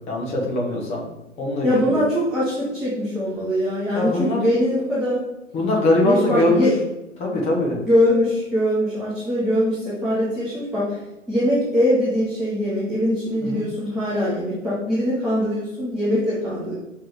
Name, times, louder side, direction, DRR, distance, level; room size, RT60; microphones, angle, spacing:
voice 1, 0.1-1.0 1.4-2.0 3.9-4.5 5.5-6.7 7.2-7.8 13.4-13.6, left 2 dB, 15° left, -2 dB, 1.6 m, -22 dB
voice 2, 1.6-5.2 6.0-6.7 7.9-11.0 11.3-16.7, equal, ahead, -10 dB, 0.4 m, -22 dB
5.7 x 3.6 x 4.7 m, 0.97 s
figure-of-eight pair, 125°, 39 cm